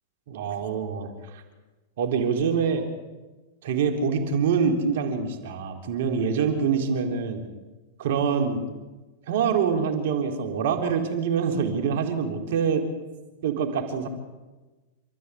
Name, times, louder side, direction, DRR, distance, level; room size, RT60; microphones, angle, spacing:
voice 1, 0.3-1.1 1.3-1.4 2.0-2.8 3.6-7.4 8.0-8.7 9.3-12.8 13.4-14.1, right 6 dB, 65° right, 4 dB, 3.9 m, -25 dB
28.0 x 13.5 x 8.6 m, 1.2 s
hypercardioid pair, 110°, 0 cm